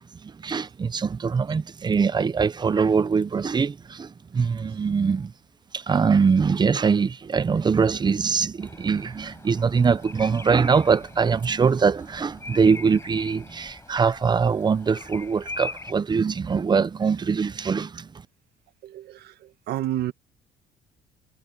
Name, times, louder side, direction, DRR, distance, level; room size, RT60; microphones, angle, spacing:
voice 1, 0.2-5.3 5.7-18.1, right 5 dB, 25° right, 0.8 m, -23 dB
Bird vocalization bird call bird song, 8.6-15.9, left 2 dB, 15° left, 6.6 m, -41 dB
voice 2, 18.8-19.3 19.7-20.1, right 13 dB, 75° right, 1.8 m, -29 dB
cardioid pair, 110°, 17 cm